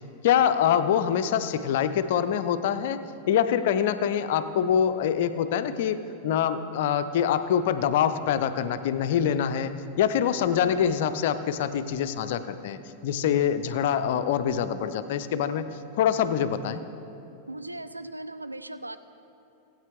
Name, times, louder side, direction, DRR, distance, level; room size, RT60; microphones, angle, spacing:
voice 1, 0.2-3.0 3.3-15.7 16.0-16.8, left 8 dB, 55° left, 11 dB, 0.5 m, -25 dB
voice 2, 17.5-19.0, right 2 dB, 85° right, 11 dB, 0.4 m, -38 dB
16.5 x 8.6 x 3.5 m, 2.8 s
figure-of-eight pair, 90°, 0 cm